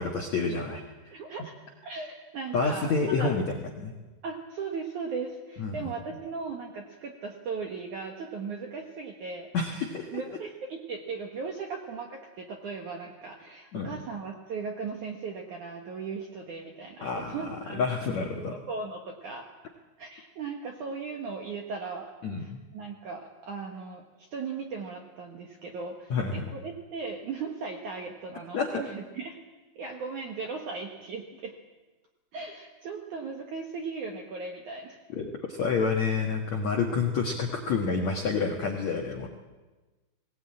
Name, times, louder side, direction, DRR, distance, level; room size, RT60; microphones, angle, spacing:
voice 1, 0.0-1.1 2.5-3.4 3.8-3.9 5.6-5.9 9.5-10.1 13.7-13.9 17.0-18.5 22.2-22.6 26.1-26.4 28.5-28.7 35.1-39.3, left 4 dB, 70° left, 1 dB, 1.6 m, -29 dB
voice 2, 1.1-1.5 1.8-3.3 4.2-9.5 10.1-18.1 18.3-19.5 20.0-22.1 22.4-29.4 29.8-31.5 32.3-35.0 36.9-37.0, right 4 dB, 70° right, 2 dB, 1.9 m, -37 dB
21.0 x 18.5 x 8.8 m, 1.2 s
omnidirectional pair, 5.7 m